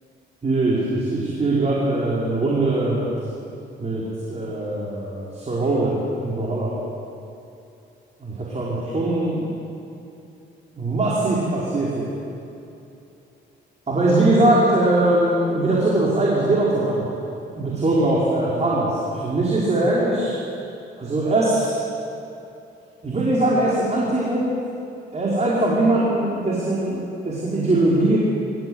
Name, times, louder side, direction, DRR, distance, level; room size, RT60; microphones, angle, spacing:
voice 1, 0.4-3.0 3.8-4.0 4.3-6.7 8.2-9.5 10.7-12.1 13.9-17.0 17.5-18.9 19.2-20.3 21.0-21.8 23.0-24.5 25.1-28.2, right 2 dB, 35° right, -6 dB, 4.9 m, -21 dB
26.0 x 14.5 x 8.0 m, 2.8 s
cardioid pair, 90°, 20 cm